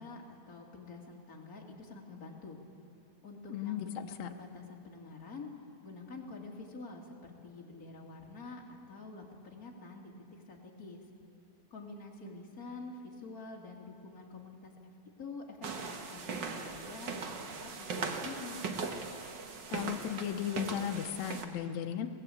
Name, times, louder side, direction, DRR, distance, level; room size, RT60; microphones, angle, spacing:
voice 1, 0.0-2.6 3.2-5.5 5.8-11.0 11.7-14.9 15.2-17.1 17.4-18.6, left 3 dB, 30° left, -1 dB, 2.4 m, -47 dB
voice 2, 3.5-4.3 19.7-22.1, left 10 dB, 65° left, 5 dB, 1.9 m, -36 dB
sound 1, 15.6-21.4, right 4 dB, 70° right, 1.0 m, -39 dB
22.0 x 18.0 x 8.6 m, 2.5 s
omnidirectional pair, 4.2 m